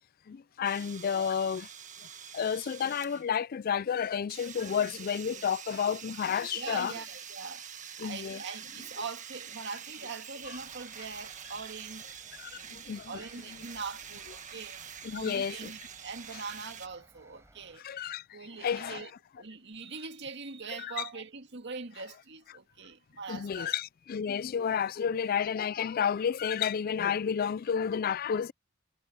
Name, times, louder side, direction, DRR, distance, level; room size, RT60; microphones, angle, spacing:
voice 1, 0.3-1.7 2.3-6.9 8.0-8.4 12.4-13.2 15.0-15.5 17.8-18.2 18.6-19.0 20.7-20.9 23.3-28.5, left 7 dB, 50° left, 0.4 m, -31 dB
sound 1, 0.6-3.3 4.3-16.9, right 8 dB, 40° right, 1.5 m, -46 dB
voice 2, 6.5-7.7 8.0-12.1 12.5-14.8 15.1-17.8 18.3-23.8, right 4 dB, 60° right, 2.1 m, -42 dB
sound 2, 10.4-17.8, right 1 dB, 15° right, 4.1 m, -62 dB
head